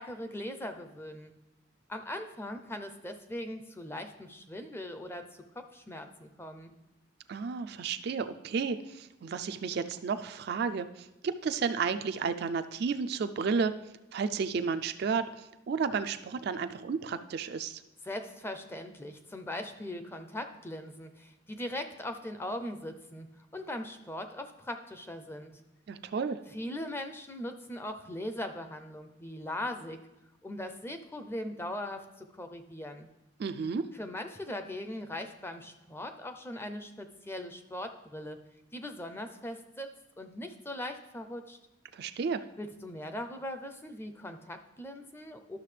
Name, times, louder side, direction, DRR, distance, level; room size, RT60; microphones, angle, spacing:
voice 1, 0.0-1.3 1.9-5.3 5.5-6.7 18.0-25.6 26.5-30.0 30.4-33.1 33.9-38.4 38.7-39.9 40.2-41.6 42.6-45.6, left 1 dB, 10° left, 7 dB, 0.5 m, -40 dB
voice 2, 7.3-13.7 14.1-17.8 25.9-26.4 33.4-33.9 41.9-42.4, right 5 dB, 55° right, 9 dB, 0.3 m, -32 dB
11.5 x 6.3 x 3.3 m, 0.94 s
head